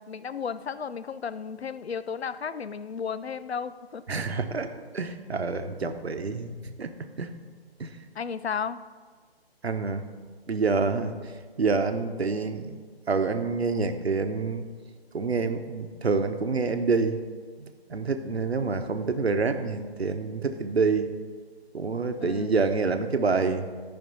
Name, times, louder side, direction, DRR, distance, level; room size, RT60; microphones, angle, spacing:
voice 1, 0.0-4.3 8.1-8.8 22.2-22.5, left 6 dB, 80° left, 15 dB, 0.6 m, -34 dB
voice 2, 4.1-6.5 6.8-6.9 7.2-7.3 7.8-8.0 9.6-10.0 10.5-11.1 11.6-12.8 13.1-14.7 15.1-17.2 17.6-21.1 21.7-23.7, right 4 dB, 75° right, 8 dB, 1.1 m, -27 dB
13.0 x 5.3 x 5.4 m, 1.5 s
figure-of-eight pair, 150°, 32 cm